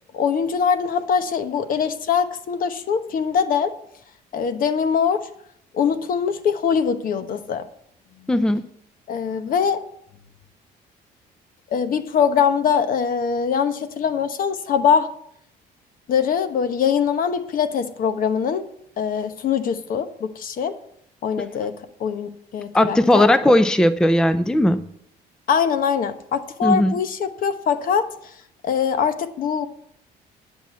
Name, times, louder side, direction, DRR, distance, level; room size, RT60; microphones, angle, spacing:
voice 1, 0.1-3.7 4.3-5.3 5.7-7.7 9.1-9.8 11.7-15.1 16.1-18.6 19.0-20.7 21.2-21.7 22.0-23.3 25.5-28.1 28.6-29.7, left 7 dB, 55° left, 11 dB, 1.0 m, -22 dB
voice 2, 8.3-8.6 21.4-21.5 22.7-24.8 26.6-27.0, left 1 dB, 5° left, 13 dB, 0.5 m, -17 dB
10.5 x 6.2 x 8.2 m, 0.71 s
cardioid pair, 110°, 17 cm